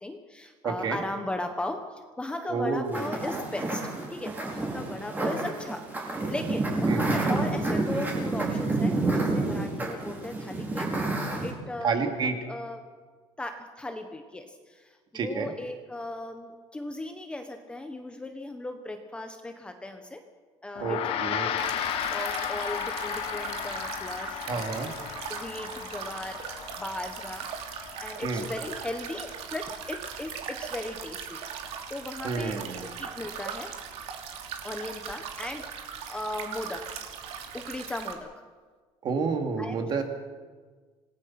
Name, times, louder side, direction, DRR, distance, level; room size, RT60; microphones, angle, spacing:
voice 1, 0.0-3.8 4.1-5.8 6.3-12.8 13.4-20.2 20.6-21.1 21.4-21.6 21.8-24.4 25.3-31.4 31.9-33.7 34.6-35.7 36.1-36.9 37.5-38.3 39.6-39.9, left 2 dB, 10° left, 5 dB, 1.2 m, -37 dB
voice 2, 0.6-1.0 2.5-3.1 6.9-7.0 11.8-12.3 15.1-15.5 20.8-21.5 24.5-24.9 28.2-28.5 32.2-32.9 39.0-40.0, right 4 dB, 40° right, 4 dB, 2.9 m, -29 dB
sound 1, 2.9-11.5, right 2 dB, 15° right, 4.7 m, -29 dB
Gong, 20.8-30.4, left 10 dB, 50° left, 1.4 m, -35 dB
sound 2, 21.6-38.1, right 7 dB, 60° right, 2.9 m, -39 dB
27.0 x 19.0 x 6.0 m, 1.4 s
cardioid pair, 170°, 12 cm